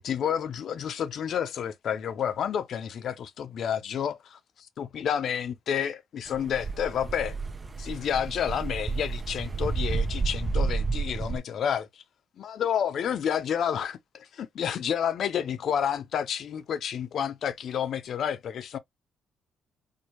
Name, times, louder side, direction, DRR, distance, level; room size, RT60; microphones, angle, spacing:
voice 1, 0.0-4.4 4.8-7.4 7.8-11.9 12.4-18.8, left 8 dB, 65° left, 0.6 m, -30 dB
sound 1, 6.3-11.4, right 4 dB, 30° right, 0.7 m, -30 dB
4.6 x 2.4 x 3.0 m
cardioid pair, 90°, 0 cm